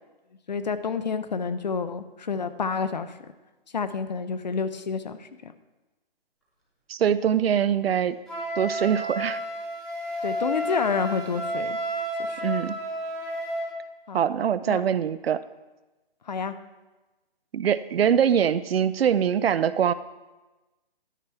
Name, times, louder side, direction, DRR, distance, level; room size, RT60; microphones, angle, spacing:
voice 1, 0.5-3.1 3.7-5.5 10.2-11.8 12.3-12.4 14.1-14.2 14.7-14.8 16.3-16.5, left 5 dB, 45° left, 12 dB, 0.5 m, -29 dB
voice 2, 6.9-8.2 8.6-9.4 12.4-12.8 14.1-15.4 17.5-19.9, right 8 dB, 85° right, 15 dB, 0.5 m, -23 dB
Wind instrument woodwind instrument, 8.3-13.7, equal, ahead, 0.9 m, -31 dB
12.0 x 5.6 x 4.6 m, 1.1 s
hypercardioid pair, 175°, 29 cm